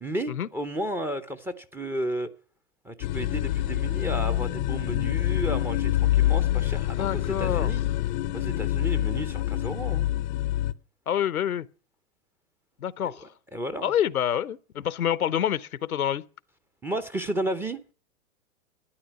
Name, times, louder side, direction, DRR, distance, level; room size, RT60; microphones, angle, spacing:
voice 1, 0.0-2.3 2.8-7.8 8.3-10.1 13.0-13.9 16.8-17.8, right 1 dB, 5° right, 0.6 m, -33 dB
sound 1, 3.0-10.7, left 14 dB, 35° left, 0.6 m, -26 dB
voice 2, 7.0-7.7 11.1-11.7 12.8-13.3 13.8-16.2, left 10 dB, 80° left, 0.8 m, -27 dB
12.5 x 9.8 x 7.0 m
hypercardioid pair, 115°, 42 cm